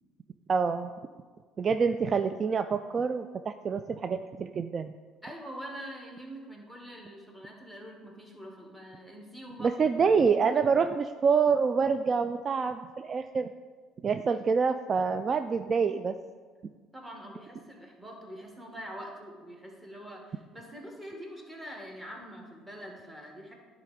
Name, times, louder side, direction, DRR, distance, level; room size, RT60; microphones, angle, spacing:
voice 1, 0.5-0.9 1.6-4.9 9.6-13.5 14.0-16.1, right 5 dB, 40° right, 9 dB, 0.3 m, -26 dB
voice 2, 5.2-9.8 10.3-10.8 16.9-23.5, equal, 10° right, 0 dB, 1.9 m, -44 dB
10.5 x 3.8 x 5.1 m, 1.5 s
hypercardioid pair, 60°, 0 cm